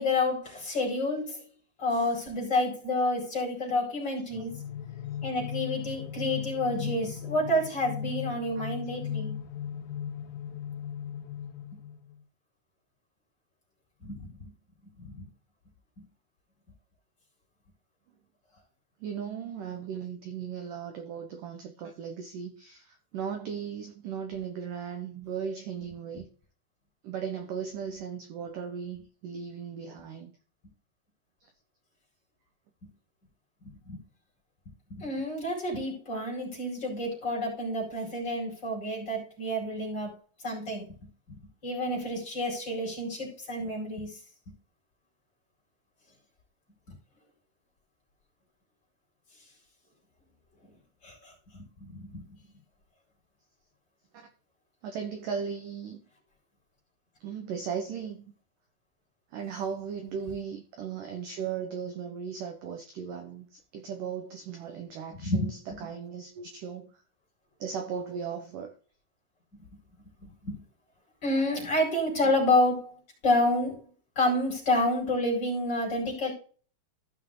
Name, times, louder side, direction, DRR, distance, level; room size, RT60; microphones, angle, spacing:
voice 1, 0.0-1.5 1.8-4.5 5.2-9.3 14.0-14.5 15.0-15.3 33.9-34.0 34.9-40.1 40.4-40.9 41.3-41.4 41.6-44.1 51.0-52.3 65.2-65.5 70.2-70.6 71.2-73.9 74.1-76.3, left 1 dB, 25° left, 5.1 m, -29 dB
sound 1, 4.3-12.2, left 9 dB, 75° left, 2.1 m, -37 dB
voice 2, 19.0-26.3 27.0-30.3 54.8-56.0 57.2-58.2 59.3-67.0 67.6-68.7 72.2-72.3, right 7 dB, 65° right, 2.2 m, -37 dB
15.0 x 5.8 x 3.8 m
omnidirectional pair, 5.0 m